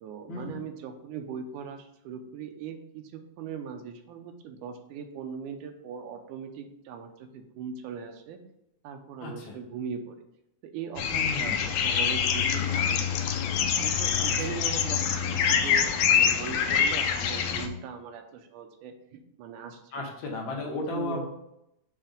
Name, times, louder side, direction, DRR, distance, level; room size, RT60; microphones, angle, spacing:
voice 1, 0.0-8.4 8.8-10.2 10.6-13.2 13.8-20.1 20.6-21.3, right 7 dB, 85° right, 5 dB, 2.3 m, -40 dB
voice 2, 9.2-9.6 11.0-11.7 14.2-14.3 19.9-21.3, left 3 dB, 65° left, 0 dB, 2.0 m, -34 dB
sound 1, 11.0-17.7, left 7 dB, 80° left, 2.0 m, -25 dB
7.3 x 3.3 x 5.1 m, 0.82 s
omnidirectional pair, 3.5 m